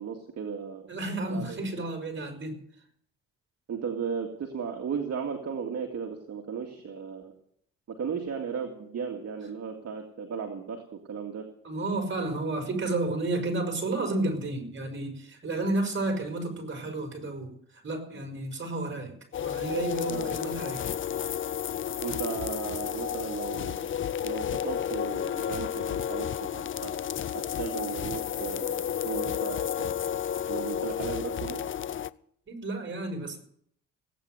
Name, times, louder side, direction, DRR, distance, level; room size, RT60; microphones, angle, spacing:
voice 1, 0.0-0.9 1.3-1.6 3.7-7.3 7.9-11.5 20.1-20.4 22.0-23.9 24.2-26.9 27.3-29.9 30.5-31.6, right 6 dB, 55° right, 3 dB, 2.3 m, -35 dB
voice 2, 0.9-2.6 11.6-20.9 32.5-33.4, right 2 dB, 40° right, 5 dB, 5.7 m, -32 dB
sound 1, 19.3-32.1, left 9 dB, 40° left, 0.6 m, -32 dB
17.5 x 9.5 x 8.0 m, 0.65 s
cardioid pair, 80°, 31 cm